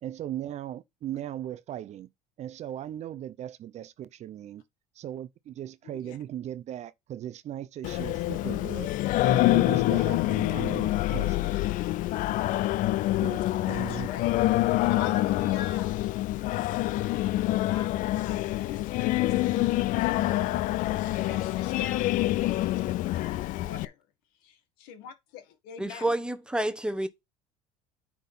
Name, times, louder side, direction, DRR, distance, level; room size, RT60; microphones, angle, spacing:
voice 1, 0.0-2.1 2.4-4.6 5.0-8.9 9.2-11.5 13.2-13.4 13.7-14.1, right 11 dB, 45° right, 0.7 m, -38 dB
voice 2, 5.8-6.2 13.6-14.3 14.7-15.9 16.5-23.9 24.4-26.1, left 9 dB, 75° left, 1.7 m, -43 dB
Singing, 7.8-23.8, left 16 dB, 60° left, 0.5 m, -26 dB
voice 3, 25.8-27.1, right 1 dB, 5° right, 1.0 m, -29 dB
9.2 x 3.7 x 5.8 m
supercardioid pair, 95°, 15 cm